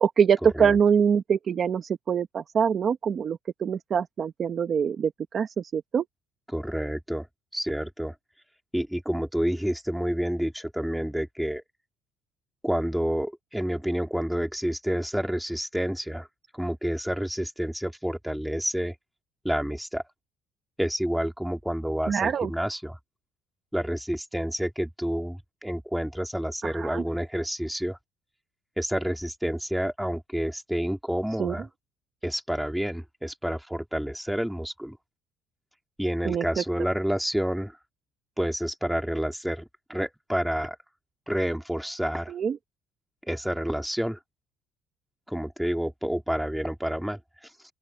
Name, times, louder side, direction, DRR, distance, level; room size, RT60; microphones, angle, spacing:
voice 1, 0.0-6.0 22.1-22.5 26.6-27.0 31.4-31.6 36.2-36.6 42.3-42.6, right 7 dB, 30° right, 0.9 m, -24 dB
voice 2, 6.5-7.3 7.5-8.1 8.7-11.6 12.6-16.3 16.5-18.9 19.4-20.0 20.8-23.0 23.7-28.0 28.8-31.7 32.2-35.0 36.0-37.7 38.4-40.8 41.3-42.3 43.3-44.2 45.3-47.2, equal, ahead, 2.1 m, -29 dB
open air
cardioid pair, 175°, 0 cm